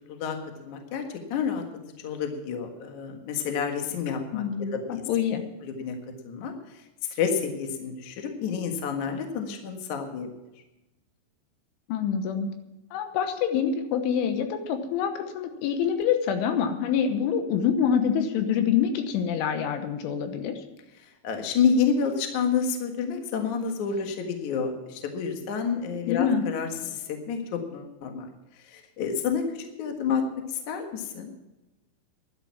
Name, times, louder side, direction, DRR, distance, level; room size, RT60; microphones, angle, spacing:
voice 1, 0.6-1.6 2.0-5.0 5.6-6.0 6.2-6.5 7.1-10.3 21.2-28.3 28.7-30.2 30.5-31.3, left 6 dB, 60° left, 4 dB, 2.1 m, -29 dB
voice 2, 4.3-5.4 11.9-12.5 12.9-20.6 26.1-26.4, left 7 dB, 80° left, 7 dB, 3.5 m, -26 dB
11.5 x 11.0 x 7.2 m, 1.0 s
omnidirectional pair, 5.6 m